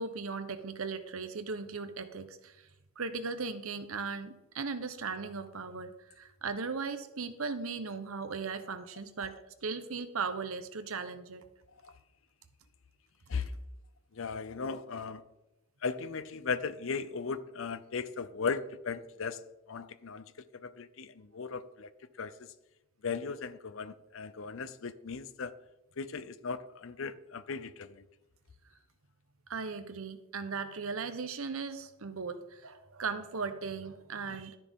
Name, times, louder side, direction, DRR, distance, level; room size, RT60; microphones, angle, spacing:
voice 1, 0.0-2.7 3.0-11.4 29.5-34.6, right 4 dB, 80° right, 0.9 m, -37 dB
voice 2, 14.2-15.2 15.8-19.4 19.7-20.2 20.6-21.9 22.2-22.3 23.0-25.5 26.0-28.0, left 5 dB, 65° left, 0.6 m, -37 dB
12.0 x 10.0 x 3.7 m
head